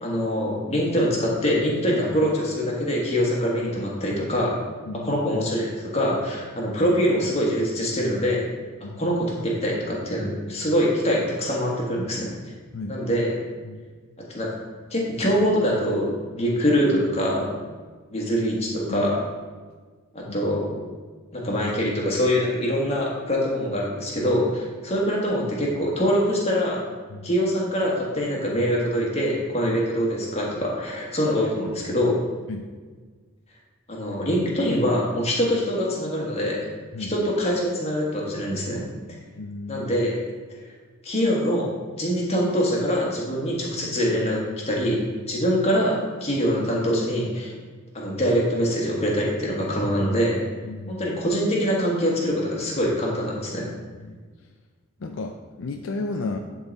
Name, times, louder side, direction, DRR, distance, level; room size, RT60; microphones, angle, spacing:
voice 1, 0.0-4.6 5.0-8.4 9.0-12.3 12.9-13.3 14.3-14.5 14.9-17.6 18.1-19.2 20.1-20.7 21.3-26.8 27.2-32.2 33.9-36.6 37.1-38.8 39.7-40.1 41.0-41.7 42.0-44.4 44.6-45.0 45.3-47.5 47.9-50.4 50.9-53.7, equal, 30° left, -3 dB, 1.5 m, -24 dB
voice 2, 39.4-39.9 50.6-51.1 54.0-54.5 55.0-56.4, left 3 dB, 60° left, 4 dB, 0.4 m, -34 dB
11.0 x 3.8 x 4.0 m, 1.4 s
head